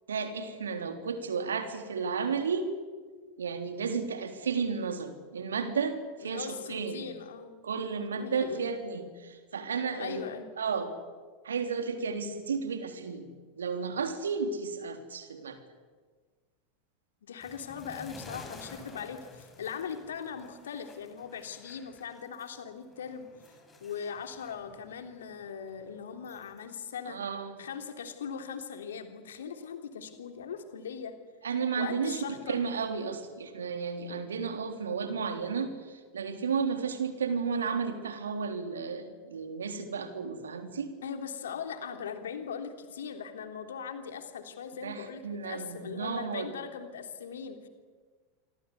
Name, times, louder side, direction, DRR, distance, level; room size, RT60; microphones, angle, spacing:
voice 1, 0.1-2.7 3.4-7.0 7.6-10.2 10.6-10.9 11.4-13.3 13.6-15.6 27.0-27.6 31.4-40.9 44.8-46.5, right 5 dB, 75° right, 6 dB, 3.5 m, -33 dB
voice 2, 6.2-7.6 7.9-8.7 10.0-10.5 17.2-23.3 23.8-27.2 27.6-31.1 31.8-32.6 41.0-47.7, left 7 dB, 70° left, 6 dB, 3.2 m, -40 dB
sound 1, 17.4-22.6 22.9-26.6, left 3 dB, 20° left, 7.6 m, -52 dB
27.5 x 24.5 x 8.3 m, 1.5 s
figure-of-eight pair, 85°, 0 cm